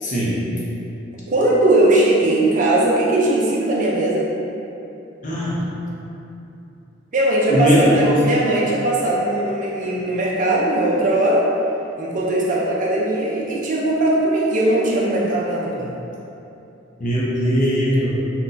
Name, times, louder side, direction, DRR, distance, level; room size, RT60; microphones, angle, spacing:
voice 1, 0.0-0.4 5.2-5.7 7.5-8.2 17.0-18.1, equal, 40° left, -6 dB, 0.6 m, -19 dB
voice 2, 1.3-4.3 7.1-11.4 12.0-15.9, right 1 dB, 40° right, -4 dB, 0.4 m, -19 dB
3.9 x 2.2 x 2.6 m, 2.8 s
head